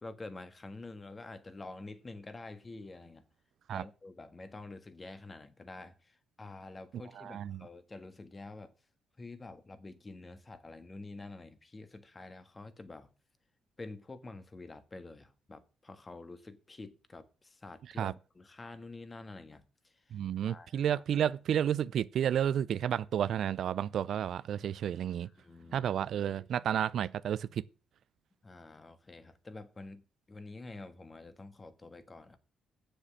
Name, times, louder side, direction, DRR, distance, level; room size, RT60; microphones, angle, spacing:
voice 1, 0.0-3.2 3.7-8.7 9.2-13.1 13.8-21.0 25.2-26.4 28.4-32.4, left 2 dB, 25° left, 1.5 m, -48 dB
voice 2, 7.2-7.7 18.0-18.1 20.1-25.3 25.7-27.6, right 9 dB, 65° right, 0.4 m, -31 dB
7.7 x 6.8 x 7.3 m
cardioid pair, 90°, 0 cm